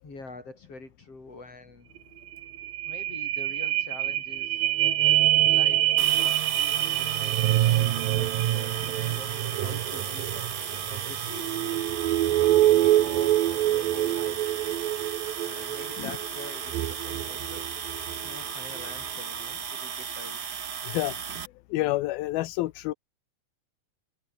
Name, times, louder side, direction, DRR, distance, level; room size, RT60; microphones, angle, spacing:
voice 1, 0.0-1.9 2.9-4.7 5.3-10.3 10.9-14.7 15.4-17.7 18.2-20.6, left 3 dB, 40° left, 8.8 m, -46 dB
sound 1, 2.0-2.1 2.3-18.3 18.8-18.9, right 14 dB, 75° right, 2.9 m, -25 dB
sound 2, 6.0-21.5, right 7 dB, 50° right, 1.2 m, -35 dB
voice 2, 20.8-21.2 21.7-22.9, left 17 dB, 85° left, 2.7 m, -28 dB
omnidirectional pair, 4.2 m